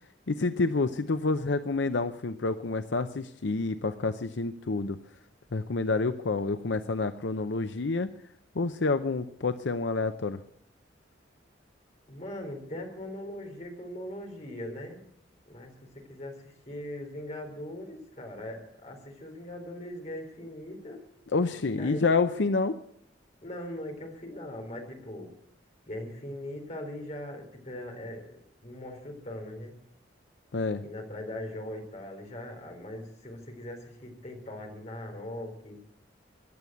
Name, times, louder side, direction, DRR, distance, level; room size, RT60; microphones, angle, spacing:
voice 1, 0.3-5.0 5.5-8.1 8.5-10.4 21.3-22.8 30.5-30.8, left 3 dB, 75° left, 9 dB, 0.7 m, -28 dB
voice 2, 12.1-15.0 15.5-21.0 21.8-22.1 23.4-25.3 25.9-29.8 30.8-35.8, left 1 dB, 40° left, 2 dB, 3.9 m, -40 dB
15.5 x 11.0 x 7.9 m, 0.71 s
head